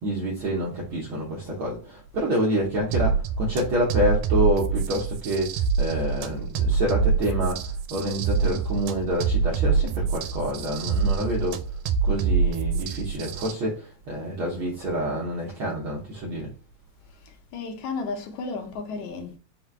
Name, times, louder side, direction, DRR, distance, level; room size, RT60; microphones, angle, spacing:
voice 1, 0.0-11.6 12.0-16.5, equal, 75° right, 1.2 m, -27 dB
sound 1, 2.9-13.5, right 5 dB, 90° right, 2.0 m, -25 dB
voice 2, 17.2-19.4, left 4 dB, 80° left, 2.1 m, -33 dB
4.9 x 2.1 x 4.4 m
omnidirectional pair, 3.4 m